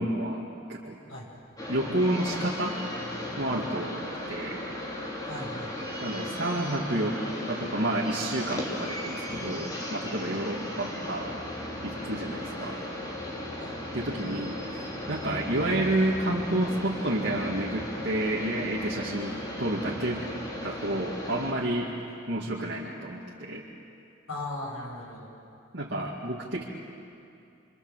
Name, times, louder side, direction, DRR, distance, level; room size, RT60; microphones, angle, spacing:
voice 1, 0.0-1.0 1.7-2.8 3.4-4.6 6.0-11.4 11.8-12.8 13.9-20.3 20.6-21.9 22.3-23.7 25.7-26.6, right 1 dB, 55° right, -4 dB, 2.3 m, -30 dB
voice 2, 1.1-1.5 5.3-6.1 10.3-10.4 13.6-13.7 24.3-25.3, left 2 dB, 90° left, -2 dB, 7.7 m, -39 dB
sound 1, 1.6-21.5, left 1 dB, 20° left, 3.4 m, -36 dB
27.5 x 25.0 x 7.5 m, 2.6 s
head